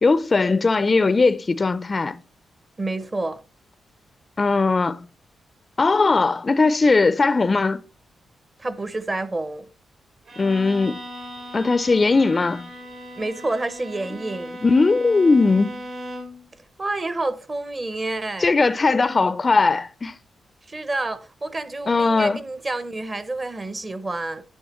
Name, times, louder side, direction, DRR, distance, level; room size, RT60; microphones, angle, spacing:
voice 1, 0.0-2.2 4.4-5.0 5.8-7.8 10.4-11.0 11.5-12.7 14.6-15.8 18.4-20.1 21.9-22.4, left 3 dB, 30° left, 0.4 m, -19 dB
voice 2, 2.8-3.4 8.6-9.7 13.2-14.6 16.8-18.5 20.7-24.4, right 2 dB, 30° right, 0.8 m, -29 dB
Bowed string instrument, 10.3-16.5, equal, 65° right, 2.7 m, -38 dB
11.0 x 7.5 x 3.0 m
cardioid pair, 95°, 0 cm